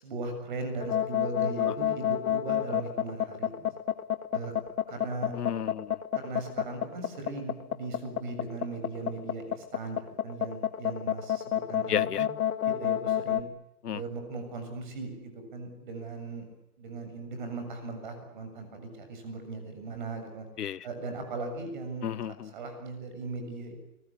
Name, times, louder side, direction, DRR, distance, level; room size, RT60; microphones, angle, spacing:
voice 1, 0.0-3.7 4.3-4.5 4.9-5.3 6.1-12.1 12.7-13.5 13.9-16.5 16.8-20.5 20.8-22.1 22.5-23.8, right 3 dB, 30° right, 6 dB, 7.0 m, -38 dB
sound 1, 0.8-13.4, left 10 dB, 65° left, 1.8 m, -28 dB
voice 2, 5.3-6.0 11.9-12.3 13.8-14.0 20.6-20.9 22.0-22.5, left 9 dB, 90° left, 21 dB, 1.0 m, -33 dB
30.0 x 22.0 x 8.6 m, 0.85 s
hypercardioid pair, 175°, 45 cm